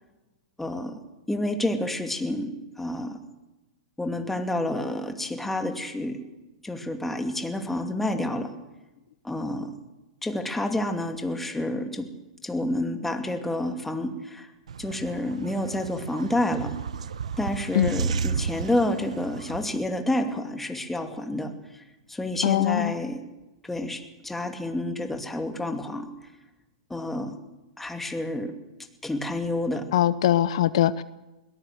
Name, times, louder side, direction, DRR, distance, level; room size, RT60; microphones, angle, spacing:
voice 1, 0.6-1.0 1.3-3.2 4.0-6.2 6.6-8.5 9.2-9.8 10.2-12.1 12.4-14.5 14.8-16.7 17.4-21.8 22.1-23.2 23.6-26.1 26.9-27.4 27.8-28.5 29.0-29.9, left 1 dB, 5° left, 6 dB, 2.6 m, -29 dB
sound 1, 14.7-19.8, right 6 dB, 80° right, 1.0 m, -33 dB
voice 2, 22.4-22.9 29.9-31.0, left 12 dB, 65° left, 16 dB, 0.8 m, -22 dB
21.5 x 19.0 x 7.9 m, 1.1 s
hypercardioid pair, 120°, 3 cm